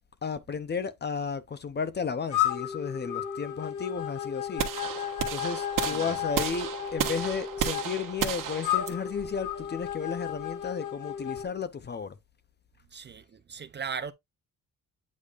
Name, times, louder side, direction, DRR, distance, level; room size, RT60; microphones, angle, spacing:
voice 1, 0.2-4.7 5.0-12.2, left 6 dB, 30° left, 0.6 m, -34 dB
sound 1, 2.3-11.5, left 10 dB, 60° left, 1.4 m, -33 dB
sound 2, 4.6-10.7, right 9 dB, 65° right, 1.1 m, -33 dB
voice 2, 5.8-6.2 12.9-14.1, right 6 dB, 30° right, 0.5 m, -38 dB
8.5 x 5.0 x 2.4 m
cardioid pair, 150°, 35 cm